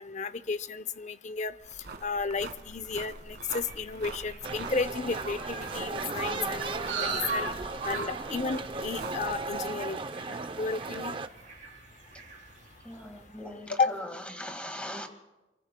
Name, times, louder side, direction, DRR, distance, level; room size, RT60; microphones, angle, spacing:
voice 1, 0.0-1.5 2.0-7.5 7.8-10.0 10.3-11.1 13.8-14.0, left 4 dB, 40° left, 15 dB, 0.6 m, -33 dB
sound 1, 1.6-9.6, right 3 dB, 65° right, 1.7 m, -44 dB
sound 2, 2.7-13.3, right 3 dB, 45° right, 5.9 m, -40 dB
sound 3, 4.4-11.3, right 3 dB, 30° right, 0.6 m, -36 dB
voice 2, 12.8-15.1, left 1 dB, 5° left, 5 dB, 1.8 m, -40 dB
27.0 x 24.0 x 2.2 m, 1.0 s
head